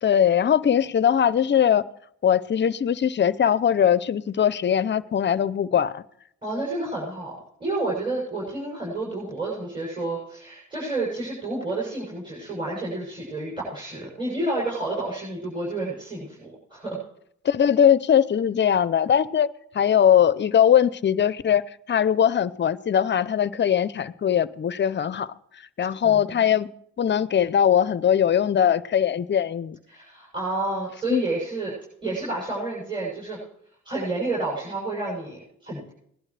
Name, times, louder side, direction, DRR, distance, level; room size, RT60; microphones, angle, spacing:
voice 1, 0.0-1.8 2.2-6.0 17.4-19.5 19.7-21.6 21.9-25.3 25.8-26.7 27.0-29.8 31.1-31.2, left 9 dB, 35° left, 0.6 m, -20 dB
voice 2, 6.4-17.0 26.0-26.3 29.9-31.7 32.0-33.5 33.8-35.9, right 2 dB, 15° right, 7.2 m, -30 dB
19.5 x 11.5 x 3.3 m
cardioid pair, 90°, 30 cm